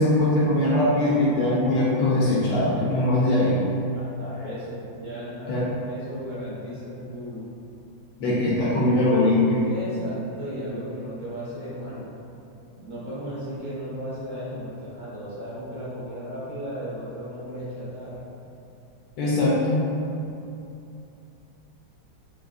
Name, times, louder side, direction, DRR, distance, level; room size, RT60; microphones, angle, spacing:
voice 1, 0.0-3.6 5.5-5.7 8.2-9.7 19.2-19.8, left 1 dB, 75° left, -6 dB, 1.3 m, -21 dB
voice 2, 3.9-7.4 9.6-12.0 12.8-18.2, equal, 50° right, -10 dB, 0.5 m, -35 dB
3.9 x 2.6 x 3.6 m, 2.8 s
omnidirectional pair, 2.2 m